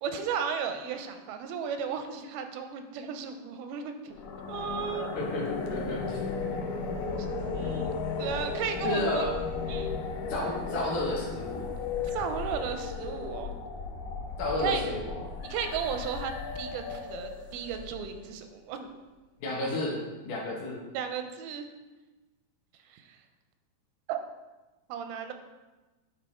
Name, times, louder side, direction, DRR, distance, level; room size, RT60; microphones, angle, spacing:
voice 1, 0.0-3.9 4.5-5.1 6.5-6.6 7.5-7.9 8.2-9.2 9.7-10.0 12.0-13.5 14.6-14.8 15.4-18.9 20.9-21.7 22.9-23.0 24.1-24.2 24.9-25.3, right 7 dB, 85° right, 7 dB, 2.4 m, -34 dB
sound 1, 4.1-18.2, left 4 dB, 85° left, 1.6 m, -35 dB
voice 2, 5.7-6.2 8.8-9.3 10.3-11.6 14.4-15.3 19.4-20.0 20.3-20.8, left 2 dB, 65° left, -3 dB, 2.4 m, -31 dB
9.8 x 3.3 x 4.2 m, 1.2 s
omnidirectional pair, 4.3 m